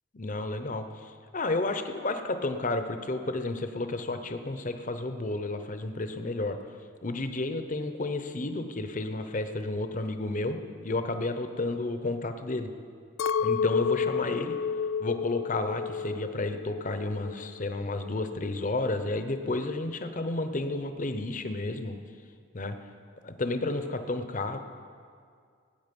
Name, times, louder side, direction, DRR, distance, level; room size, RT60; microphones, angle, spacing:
voice 1, 0.1-6.6 7.0-10.6 10.8-12.7 13.4-14.6 15.0-22.0 22.5-22.8 23.2-24.6, left 2 dB, 40° left, 8 dB, 0.7 m, -31 dB
Chink clink, 13.2-17.6 17.8-18.6, left 6 dB, 75° left, 0.3 m, -31 dB
18.5 x 8.8 x 5.3 m, 2.2 s
head